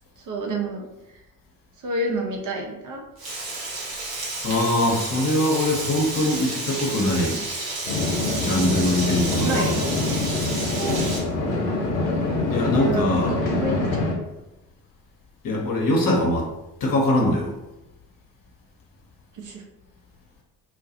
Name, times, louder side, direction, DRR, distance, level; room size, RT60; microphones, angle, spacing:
voice 1, 0.2-0.8 1.8-3.0 9.4-9.8 10.7-11.1 12.8-13.1 13.6-14.0 19.3-19.6, right 2 dB, 40° right, 1 dB, 0.6 m, -29 dB
Frying (food), 3.2-11.2, right 2 dB, 80° right, 0.8 m, -31 dB
voice 2, 4.4-7.4 8.4-9.8 12.5-13.3 15.4-16.5 16.8-17.5, left 1 dB, 45° left, -1 dB, 0.8 m, -22 dB
sound 1, 7.9-14.1, left 2 dB, 85° left, 0.6 m, -25 dB
2.3 x 2.1 x 2.7 m, 0.95 s
figure-of-eight pair, 40°, 47 cm